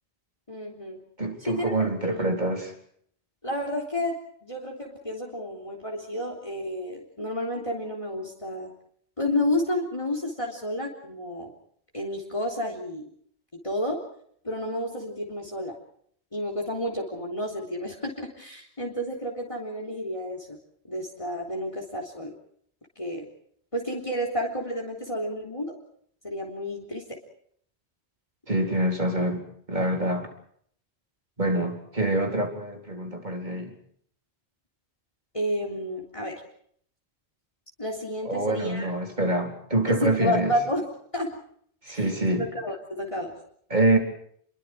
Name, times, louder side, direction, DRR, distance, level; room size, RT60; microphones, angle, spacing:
voice 1, 0.5-1.0 1.4-2.3 3.4-8.7 9.2-11.5 11.9-13.1 13.6-14.0 14.4-15.7 16.3-20.6 20.9-22.3 23.0-23.3 23.7-25.7 26.2-27.2 35.3-36.4 37.8-38.9 39.9-40.9 41.1-41.4 41.9-43.4, left 1 dB, 30° left, 0 dB, 3.6 m, -31 dB
voice 2, 1.2-2.7 28.5-30.3 31.4-33.7 38.3-40.5 41.8-42.5 43.7-44.0, right 1 dB, 40° right, 2 dB, 4.2 m, -26 dB
30.0 x 22.5 x 4.6 m, 0.64 s
omnidirectional pair, 1.1 m